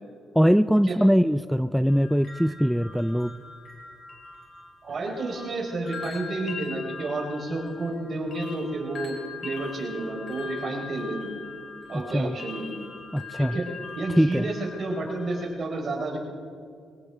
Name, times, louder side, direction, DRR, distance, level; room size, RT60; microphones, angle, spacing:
voice 1, 0.4-3.3 11.9-12.4 13.1-13.6 14.2-14.5, equal, ahead, 12 dB, 0.3 m, -22 dB
sound 1, 1.9-15.5, left 5 dB, 55° left, 3.9 m, -42 dB
voice 2, 4.8-9.2 9.4-11.3 11.9-12.8 13.4-13.7 14.0-16.2, right 2 dB, 45° right, -1 dB, 4.3 m, -30 dB
23.0 x 17.5 x 3.5 m, 2.3 s
cardioid pair, 90°, 0 cm